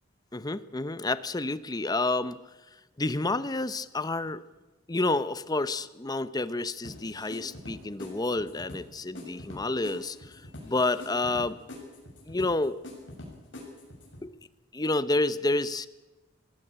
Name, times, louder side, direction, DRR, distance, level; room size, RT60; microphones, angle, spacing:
voice 1, 0.3-2.4 3.0-4.4 4.9-11.6 12.3-12.8 14.2-14.3 14.7-15.9, left 2 dB, 20° left, 14 dB, 0.7 m, -29 dB
sound 1, 6.8-14.2, left 1 dB, 70° left, 7.3 m, -45 dB
21.0 x 16.0 x 8.8 m, 1.1 s
head